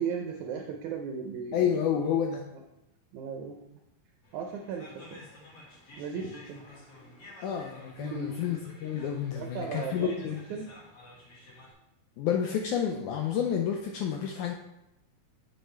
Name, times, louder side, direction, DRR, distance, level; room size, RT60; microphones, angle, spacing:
voice 1, 0.0-1.7 3.1-3.6 4.3-5.2 6.0-6.6 8.0-8.4 9.3-10.1 10.5-10.7, right 6 dB, 80° right, 2 dB, 1.7 m, -36 dB
voice 2, 1.5-2.4 7.4-10.4 12.2-14.5, left 8 dB, 80° left, 2 dB, 1.8 m, -29 dB
sound 1, 4.2-11.7, left 1 dB, 50° left, 2.4 m, -51 dB
7.8 x 6.6 x 3.2 m, 0.89 s
omnidirectional pair, 4.1 m